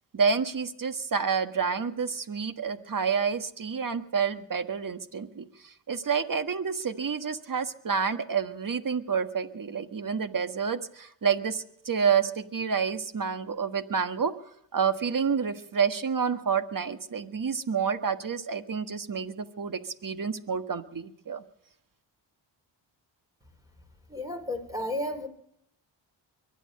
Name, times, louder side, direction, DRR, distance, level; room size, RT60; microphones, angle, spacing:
voice 1, 0.1-14.4 14.7-21.4, right 6 dB, 40° right, 10 dB, 1.5 m, -29 dB
voice 2, 24.1-25.3, left 1 dB, 5° right, 5 dB, 4.3 m, -32 dB
23.5 x 9.3 x 6.6 m, 0.72 s
supercardioid pair, 50°, 48 cm